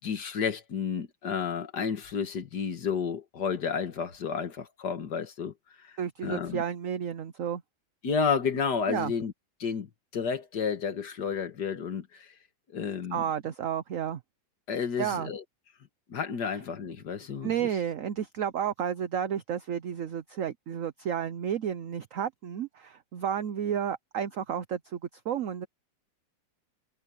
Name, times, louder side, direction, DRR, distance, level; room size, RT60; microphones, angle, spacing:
voice 1, 0.0-5.5 5.8-5.9 6.2-6.6 8.0-9.3 9.6-9.9 10.1-12.3 12.7-13.2 14.7-15.4 16.1-17.5, left 6 dB, 60° left, 2.1 m, -31 dB
voice 2, 6.0-7.6 8.9-9.1 13.1-14.2 15.0-15.3 17.4-25.0 25.2-25.7, right 9 dB, 55° right, 0.9 m, -31 dB
omnidirectional pair, 2.1 m